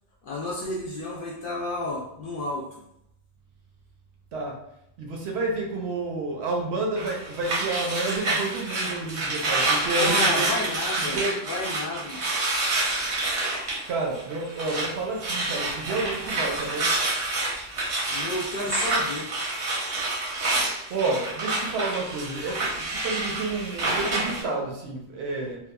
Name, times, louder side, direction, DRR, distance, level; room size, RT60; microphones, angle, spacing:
voice 1, 0.2-2.6 9.9-11.2 11.5-12.2 18.1-19.3, left 1 dB, 60° left, -4 dB, 0.6 m, -31 dB
voice 2, 4.3-4.6 5.0-10.5 11.0-11.4 13.9-17.0 20.9-25.6, right 3 dB, 70° right, 0 dB, 0.8 m, -30 dB
sound 1, 7.0-14.9 15.2-24.4, right 2 dB, 90° right, 1.2 m, -28 dB
2.8 x 2.3 x 2.3 m, 0.79 s
omnidirectional pair, 1.2 m